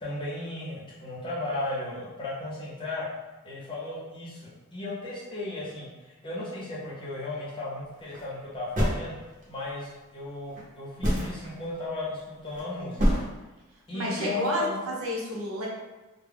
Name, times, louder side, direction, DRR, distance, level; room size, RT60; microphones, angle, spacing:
voice 1, 0.0-3.1 3.4-9.2 9.5-13.2 13.9-14.8, left 2 dB, 25° left, -7 dB, 0.7 m, -35 dB
sound 1, 7.9-8.3 8.8-9.6 10.5-10.6 11.0-11.5 12.3-12.6 13.0-13.2, equal, 40° right, 0.9 m, -25 dB
voice 2, 13.9-15.7, right 1 dB, 80° right, -4 dB, 0.8 m, -31 dB
2.3 x 2.1 x 3.5 m, 1.1 s
head